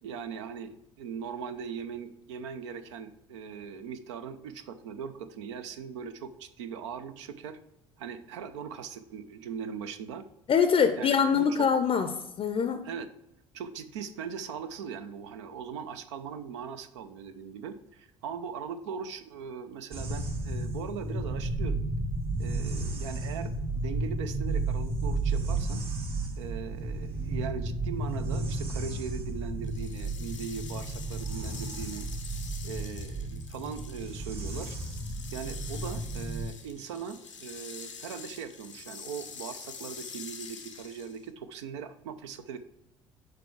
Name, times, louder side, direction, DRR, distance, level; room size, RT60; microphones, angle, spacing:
voice 1, 0.0-7.6 8.0-10.3 11.0-11.7 12.8-13.1 13.5-21.8 22.4-25.8 26.4-32.1 32.6-34.8 35.3-42.6, right 7 dB, 70° right, 10 dB, 0.5 m, -40 dB
voice 2, 10.5-12.1 12.4-12.9, left 7 dB, 35° left, 9 dB, 0.5 m, -24 dB
sound 1, 19.9-36.5, right 2 dB, 35° right, 1.7 m, -33 dB
sound 2, 29.6-41.3, left 6 dB, 85° left, 0.7 m, -46 dB
6.7 x 4.7 x 4.6 m, 0.87 s
figure-of-eight pair, 55°, 16 cm